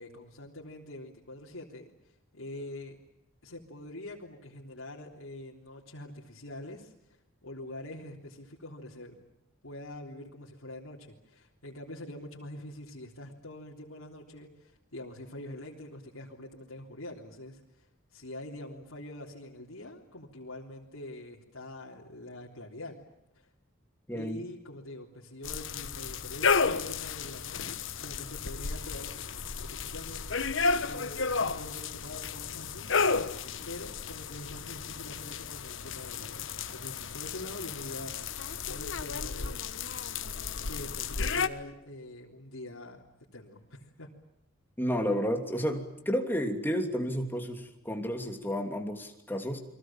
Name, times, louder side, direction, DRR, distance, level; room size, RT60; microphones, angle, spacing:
voice 1, 0.0-1.9 2.3-3.0 3.4-9.2 9.6-17.9 18.1-23.0 23.3-23.5 24.1-29.1 29.6-30.5 30.8-32.9 33.7-38.4 38.7-39.7 40.7-43.0 43.3-44.1, left 1 dB, 90° left, -3 dB, 3.5 m, -45 dB
voice 2, 24.1-24.4 44.8-49.6, equal, 10° left, 4 dB, 3.0 m, -31 dB
sound 1, 25.4-41.5, left 5 dB, 65° left, 1.2 m, -33 dB
30.0 x 23.0 x 7.5 m, 0.83 s
head